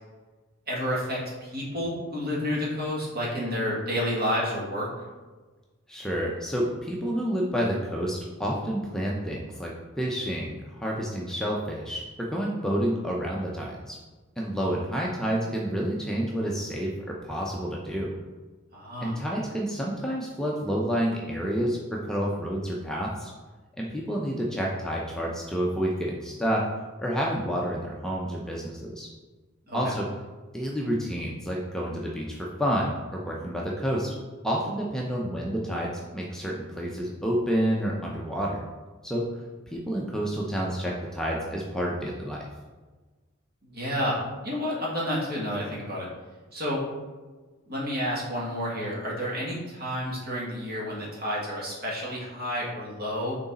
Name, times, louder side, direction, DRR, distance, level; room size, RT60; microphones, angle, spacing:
voice 1, 0.7-4.9 18.7-19.2 29.7-30.0 43.6-46.1 46.5-46.8 47.7-53.4, equal, 50° right, -5 dB, 1.7 m, -30 dB
voice 2, 5.9-14.0 14.4-18.1 19.0-23.3 23.8-26.6 27.0-29.1 29.7-30.0 30.5-34.1 34.4-38.6 39.0-39.2 39.7-42.4, equal, 5° left, -3 dB, 0.5 m, -29 dB
6.1 x 4.0 x 4.0 m, 1.3 s
head